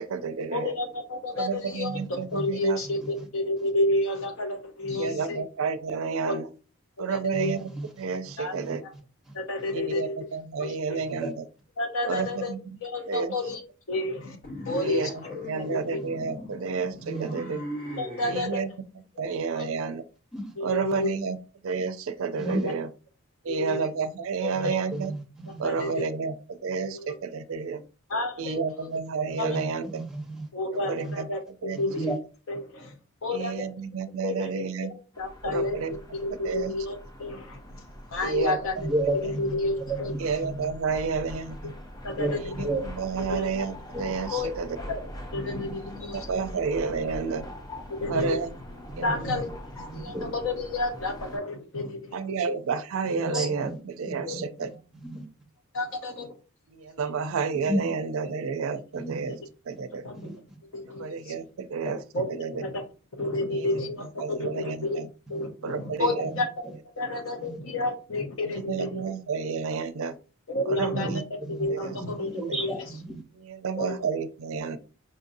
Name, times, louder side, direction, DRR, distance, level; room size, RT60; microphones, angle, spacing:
voice 1, 0.0-0.7 1.4-2.8 4.9-6.5 7.0-8.8 9.7-11.5 12.0-12.8 13.1-13.3 14.8-17.6 18.3-18.7 19.2-20.0 20.6-21.4 21.6-22.9 23.4-25.1 25.6-27.8 28.4-30.0 30.7-31.9 33.3-34.9 35.4-36.0 36.3-36.7 38.2-38.9 39.2-39.4 40.2-41.7 42.3-44.8 46.1-47.5 48.1-48.5 49.0-49.1 52.1-54.7 56.7-59.4 59.7-60.1 60.9-62.0 62.3-62.6 63.5-65.1 65.6-66.3 68.5-70.2 70.6-71.3 71.7-72.0 72.5-72.6 73.4-74.8, right 5 dB, 70° right, 0.4 m, -31 dB
voice 2, 0.5-2.0 2.3-5.4 6.2-6.4 7.1-7.5 8.4-8.5 9.3-10.1 10.6-11.0 11.8-12.5 12.8-13.6 13.9-14.4 14.7-15.1 15.5-16.0 18.0-18.6 19.5-19.7 20.6-21.1 22.4-22.7 23.5-23.8 24.4-24.8 25.6-26.0 26.9-27.2 28.1-28.9 29.4-29.5 30.5-31.4 31.8-32.1 32.5-33.0 33.2-33.7 34.2-34.5 35.2-35.8 36.2-37.6 38.1-38.9 39.2-40.1 42.0-42.7 43.3-43.5 44.3-44.5 45.3-46.3 47.9-48.3 49.0-52.2 53.3-53.4 54.3-54.5 55.7-56.3 59.3-59.4 60.0-60.2 60.7-61.1 62.1-62.8 63.2-65.0 65.3-66.5 67.0-69.0 70.5-71.2 71.6-72.7 73.8-73.9, left 2 dB, 65° left, 0.8 m, -30 dB
voice 3, 1.9-2.5 7.3-7.8 8.6-8.8 11.1-11.3 15.6-15.8 17.0-17.3 20.3-20.5 22.4-22.6 24.6-24.7 25.0-25.2 25.5-25.6 29.4-30.4 31.0-31.2 31.9-32.1 38.8-40.7 42.2-42.4 42.6-42.8 48.9-49.1 49.9-50.3 53.1-53.8 54.0-54.4 54.9-55.2 57.6-57.9 58.9-59.3 60.1-60.4 65.3-65.4 66.3-66.4 67.4-67.6 71.0-71.7 72.0-73.2, right 1 dB, 5° right, 0.9 m, -32 dB
sound 1, 14.4-18.4, left 1 dB, 40° left, 0.9 m, -39 dB
sound 2, 35.1-51.4, equal, 20° left, 0.6 m, -43 dB
5.1 x 2.6 x 2.6 m
head